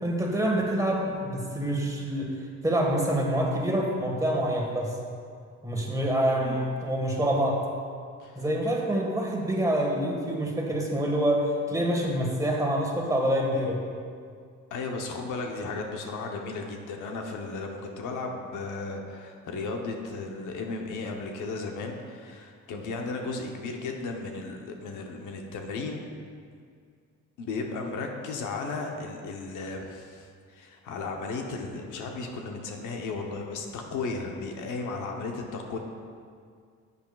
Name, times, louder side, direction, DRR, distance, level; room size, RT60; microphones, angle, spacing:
voice 1, 0.0-2.3 2.6-4.9 5.6-7.6 8.3-13.8, right 1 dB, 10° right, -1 dB, 1.6 m, -26 dB
voice 2, 14.7-26.1 27.4-35.8, left 3 dB, 85° left, 2 dB, 1.0 m, -35 dB
10.5 x 8.4 x 2.4 m, 2.2 s
cardioid pair, 90°, 30 cm